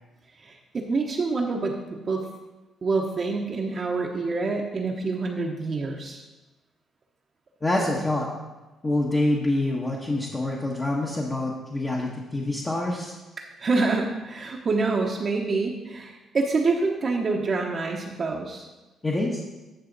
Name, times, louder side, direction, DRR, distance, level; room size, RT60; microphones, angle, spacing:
voice 1, 0.4-2.2 2.8-6.2 13.4-18.7, right 3 dB, 40° right, 0 dB, 0.9 m, -27 dB
voice 2, 7.6-8.3 8.8-13.1 19.0-19.4, left 1 dB, 25° left, -3 dB, 1.2 m, -26 dB
10.5 x 5.6 x 4.0 m, 1.1 s
cardioid pair, 90°, 0 cm